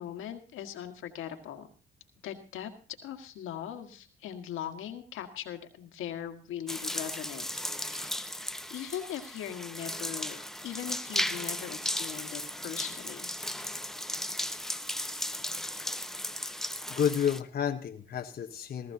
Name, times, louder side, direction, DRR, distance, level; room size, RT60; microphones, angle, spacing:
voice 1, 0.0-1.7 2.2-2.7 3.0-8.4 8.7-13.3, left 10 dB, 90° left, 6 dB, 1.8 m, -40 dB
sound 1, 6.7-17.4, left 1 dB, ahead, 0.8 m, -36 dB
voice 2, 16.9-18.9, left 8 dB, 50° left, 4 dB, 1.1 m, -30 dB
19.0 x 14.0 x 2.8 m, 0.36 s
cardioid pair, 90°, 20 cm